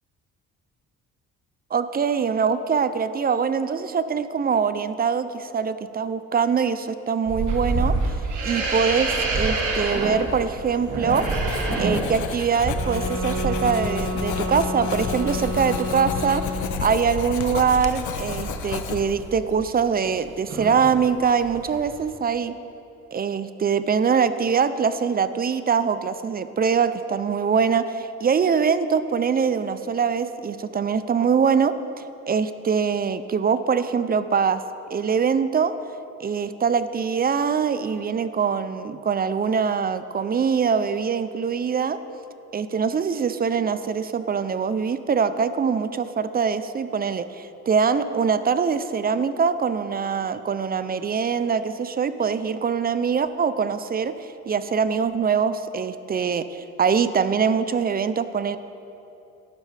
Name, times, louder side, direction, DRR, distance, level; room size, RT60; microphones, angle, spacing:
voice 1, 1.7-7.9 8.4-11.3 11.8-16.5 16.8-22.6 23.1-31.7 32.3-34.6 34.9-35.7 36.2-42.0 42.5-54.1 54.5-56.4 56.8-58.6, right 6 dB, 30° right, 12 dB, 0.5 m, -23 dB
sound 1, 7.3-20.2 20.5-21.0 21.4-22.0, right 2 dB, 75° right, 1.8 m, -28 dB
Writing, 11.1-19.3, left 7 dB, 75° left, 0.8 m, -32 dB
sound 2, 12.7-16.9, left 1 dB, 50° right, 2.7 m, -30 dB
12.0 x 11.5 x 3.4 m, 2.9 s
cardioid pair, 90°, 30 cm